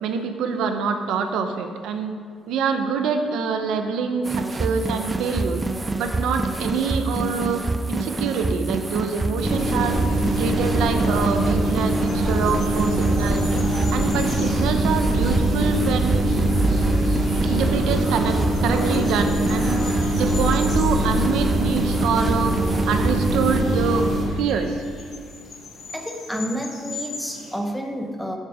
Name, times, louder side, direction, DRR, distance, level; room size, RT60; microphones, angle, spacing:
voice 1, 0.0-2.1 2.5-5.6 6.0-7.6 7.9-10.0 10.4-13.5 13.9-16.3 17.4-19.8 20.1-22.5 22.9-24.8, right 5 dB, 85° right, 6 dB, 0.9 m, -25 dB
sound 1, 4.2-23.6, right 3 dB, 15° right, 0.4 m, -28 dB
sound 2, 9.4-24.2, right 1 dB, 55° right, 3.0 m, -22 dB
sound 3, 10.2-27.6, left 3 dB, 55° left, 3.1 m, -42 dB
voice 2, 25.9-28.4, equal, 5° left, 3 dB, 1.0 m, -30 dB
12.0 x 6.7 x 5.0 m, 2.1 s
cardioid pair, 130°, 0 cm